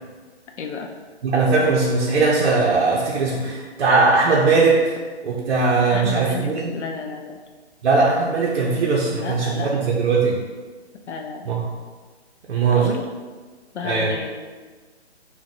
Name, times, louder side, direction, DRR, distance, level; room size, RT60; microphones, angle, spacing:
voice 1, 0.6-0.9 5.9-7.4 9.1-9.9 11.1-11.5 12.7-13.1 13.7-14.4, left 5 dB, 85° left, 4 dB, 0.5 m, -31 dB
voice 2, 1.2-5.0 5.2-6.7 7.8-10.4 11.5-11.6 12.5-12.9 13.8-14.1, right 4 dB, 65° right, -4 dB, 0.6 m, -19 dB
3.7 x 2.2 x 2.7 m, 1.4 s
hypercardioid pair, 155°, 34 cm